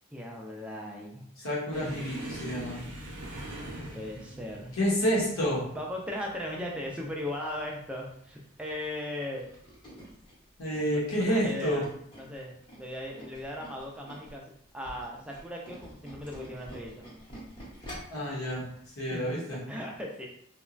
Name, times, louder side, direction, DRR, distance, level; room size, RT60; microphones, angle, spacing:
voice 1, 0.1-1.3 3.8-4.7 5.7-9.5 10.9-11.8 12.2-17.0 19.1-19.2 19.7-20.3, left 1 dB, 5° right, -1 dB, 0.3 m, -38 dB
voice 2, 1.4-2.8 4.8-5.6 10.6-11.8 18.1-18.7 19.0-19.6, equal, 70° left, -5 dB, 0.9 m, -29 dB
sound 1, 1.7-8.9 9.2-9.6 9.9-10.1 11.0-11.5 12.5-12.7 14.0-14.2, right 1 dB, 90° right, 0.6 m, -44 dB
Tools, 9.4-14.4 14.7-18.2 18.6-18.8 19.1-19.2, equal, 20° left, 0.8 m, -47 dB
2.9 x 2.1 x 2.4 m, 0.68 s
head